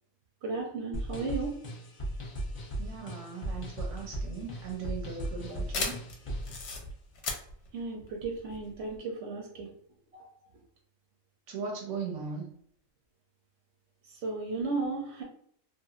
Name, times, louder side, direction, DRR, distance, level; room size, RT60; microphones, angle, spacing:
voice 1, 0.4-1.5 7.7-9.7 10.1-10.3 14.1-15.2, right 3 dB, 60° right, 0 dB, 0.8 m, -34 dB
sound 1, 0.9-6.6, right 1 dB, 45° left, 0.4 m, -37 dB
voice 2, 2.8-6.0 11.5-12.5, right 5 dB, 85° right, -1 dB, 1.1 m, -38 dB
sound 2, 3.9-9.0, left 3 dB, 65° left, 0.9 m, -38 dB
3.0 x 2.4 x 2.3 m, 0.64 s
omnidirectional pair, 1.4 m